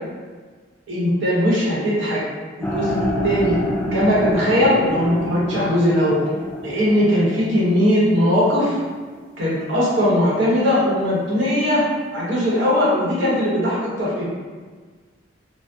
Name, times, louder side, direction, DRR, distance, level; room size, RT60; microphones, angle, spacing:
voice 1, 0.9-2.2 2.6-2.9 3.2-3.6 3.9-6.2 6.6-8.8 9.4-11.8 12.1-14.3, equal, 85° right, -8 dB, 0.9 m, -19 dB
sound 1, 2.6-8.7, left 1 dB, 10° left, 0.3 m, -27 dB
2.6 x 2.0 x 3.4 m, 1.5 s
head